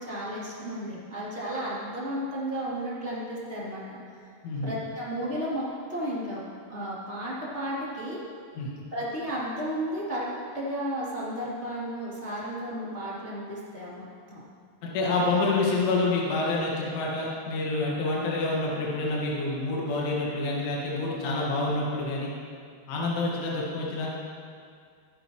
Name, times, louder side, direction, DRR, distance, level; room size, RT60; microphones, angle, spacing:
voice 1, 0.0-4.0 4.6-6.4 6.7-8.2 8.9-10.3 10.5-14.4, equal, 15° right, -8 dB, 2.6 m, -33 dB
voice 2, 14.9-22.3 22.9-24.1, left 2 dB, 80° left, -4 dB, 4.2 m, -27 dB
23.5 x 10.0 x 3.2 m, 2.2 s
omnidirectional pair, 5.5 m